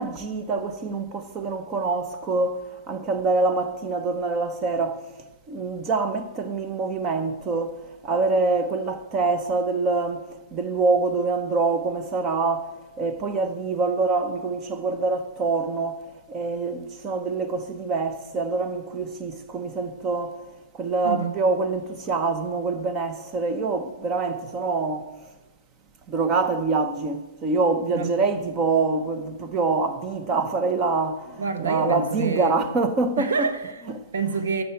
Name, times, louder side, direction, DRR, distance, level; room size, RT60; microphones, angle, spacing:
voice 1, 0.0-5.0 5.5-10.3 10.5-20.4 20.7-25.2 26.1-33.5 34.0-34.1, right 3 dB, 20° right, 0.9 m, -25 dB
voice 2, 31.4-32.6 33.2-33.8 34.1-34.6, right 5 dB, 80° right, 1.4 m, -27 dB
13.5 x 6.7 x 8.3 m
hypercardioid pair, 170°, 0 cm